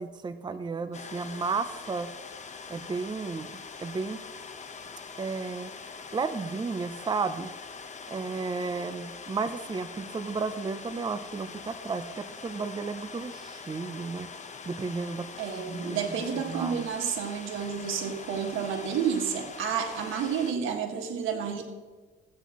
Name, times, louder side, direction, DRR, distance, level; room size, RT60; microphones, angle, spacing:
voice 1, 0.0-2.1 2.7-3.5 3.8-4.2 5.2-5.7 6.1-7.5 8.1-14.3 14.7-15.3 15.5-16.0 16.5-16.9, right 4 dB, 20° right, 10 dB, 0.6 m, -33 dB
sound 1, 0.9-20.5, left 5 dB, 35° left, 0.9 m, -43 dB
voice 2, 15.4-21.6, right 7 dB, 85° right, 4 dB, 1.7 m, -30 dB
14.0 x 9.1 x 3.0 m, 1.3 s
cardioid pair, 90°, 20 cm